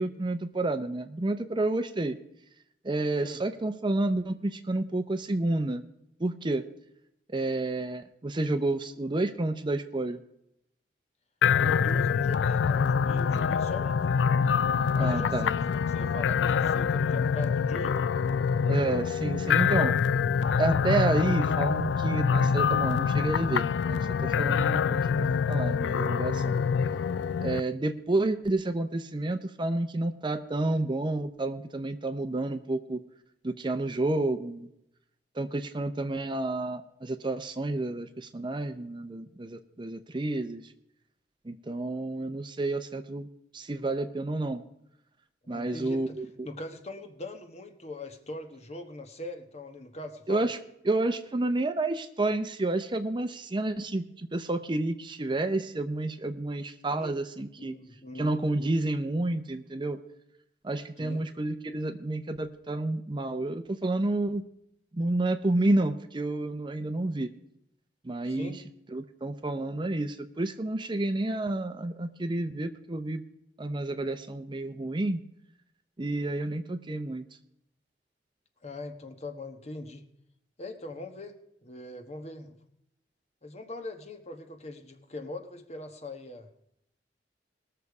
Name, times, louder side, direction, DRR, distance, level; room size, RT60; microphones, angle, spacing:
voice 1, 0.0-2.2 2.8-5.8 6.2-6.6 7.3-10.2 14.7-15.5 18.7-19.9 20.6-24.1 24.4-26.6 27.4-33.0 33.4-34.7 35.4-40.6 41.5-43.3 43.5-44.6 45.5-46.5 50.3-50.6 50.9-57.7 58.2-60.0 60.6-64.4 64.9-67.3 68.0-68.5 68.9-73.2 73.6-75.2 76.0-77.2, right 2 dB, 25° right, 9 dB, 0.6 m, -30 dB
sound 1, 11.4-27.6, left 6 dB, 90° left, 0.4 m, -25 dB
voice 2, 11.6-14.0 15.0-18.1 26.5-26.8 45.4-46.2 46.4-50.5 56.9-57.2 57.6-58.3 61.0-61.3 68.2-68.6 78.6-80.0 80.6-81.4 81.6-82.6 83.4-86.5, left 2 dB, 40° left, 6 dB, 1.2 m, -41 dB
20.0 x 6.8 x 4.8 m, 0.78 s
head